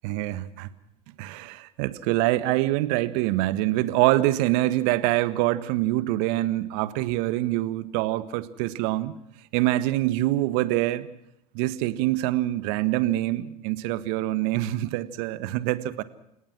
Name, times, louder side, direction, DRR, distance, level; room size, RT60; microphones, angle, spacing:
voice 1, 0.0-0.7 1.2-9.2 9.5-11.1 11.5-16.0, right 16 dB, 60° right, 1.6 m, -25 dB
29.5 x 18.0 x 6.2 m
hypercardioid pair, 90°, 21 cm